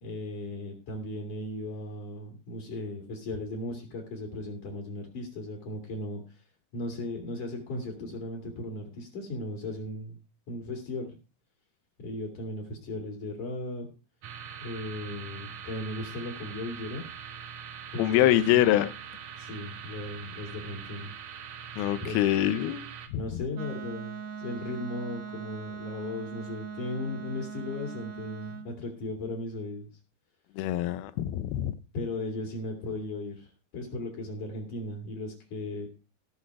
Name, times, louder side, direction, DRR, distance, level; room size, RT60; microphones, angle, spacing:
voice 1, 0.0-6.4 6.7-10.2 10.5-11.1 12.0-13.9 14.6-17.0 17.9-18.6 19.4-21.1 22.0-22.8 23.1-29.9 31.9-35.9, left 2 dB, 55° left, 3.8 m, -37 dB
sound 1, 14.2-23.1, right 8 dB, 90° right, 1.4 m, -43 dB
voice 2, 18.0-18.9 21.8-22.9 23.1-23.4 30.6-31.7, left 13 dB, 80° left, 2.6 m, -25 dB
Wind instrument woodwind instrument, 23.5-28.7, right 6 dB, 70° right, 1.8 m, -40 dB
18.5 x 6.5 x 4.7 m
omnidirectional pair, 4.6 m